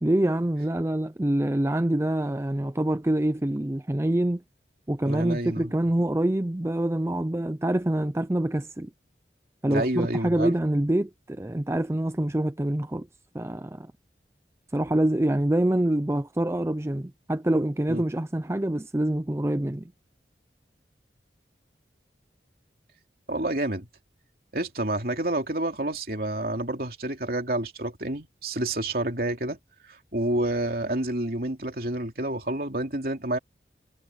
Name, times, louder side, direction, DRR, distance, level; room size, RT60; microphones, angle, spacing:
voice 1, 0.0-4.4 4.9-8.9 9.6-13.1 13.3-13.9 14.7-19.9, right 1 dB, 15° right, 0.5 m, -26 dB
voice 2, 5.0-5.7 9.7-10.5 17.9-18.0 23.3-23.9 24.5-29.6 30.1-33.4, right 1 dB, 55° right, 3.2 m, -29 dB
head